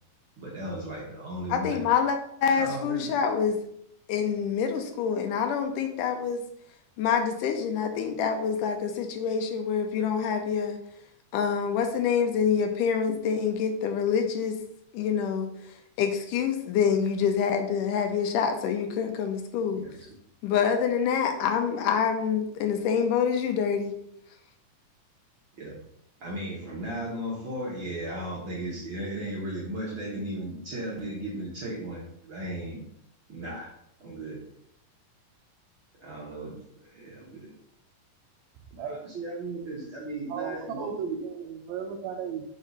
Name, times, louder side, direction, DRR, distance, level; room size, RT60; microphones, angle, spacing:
voice 1, 0.4-1.8 2.6-3.1 19.8-19.9 25.6-25.7 26.2-32.0 32.3-32.8 33.3-33.7 34.0-34.4 36.0-36.6 37.0-37.5 39.1-41.2, right 1 dB, 60° right, -4 dB, 1.4 m, -35 dB
voice 2, 1.5-3.6 4.1-6.4 7.0-10.8 11.3-14.6 14.9-15.5 16.0-19.8 20.4-23.9, left 7 dB, 80° left, 5 dB, 2.2 m, -26 dB
voice 3, 40.3-42.4, right 7 dB, 85° right, 3 dB, 1.6 m, -35 dB
5.3 x 3.8 x 5.2 m, 0.71 s
omnidirectional pair, 3.9 m